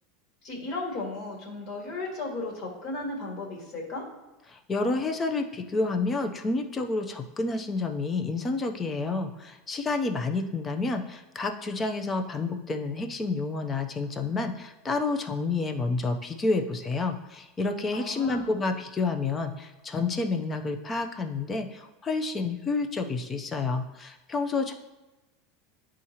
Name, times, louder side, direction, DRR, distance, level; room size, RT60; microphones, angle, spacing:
voice 1, 0.4-4.1 17.9-18.6, left 2 dB, 45° left, -1 dB, 1.9 m, -35 dB
voice 2, 4.5-24.7, left 3 dB, 20° left, 6 dB, 0.6 m, -29 dB
10.5 x 3.7 x 2.8 m, 1.1 s
supercardioid pair, 135°, 0 cm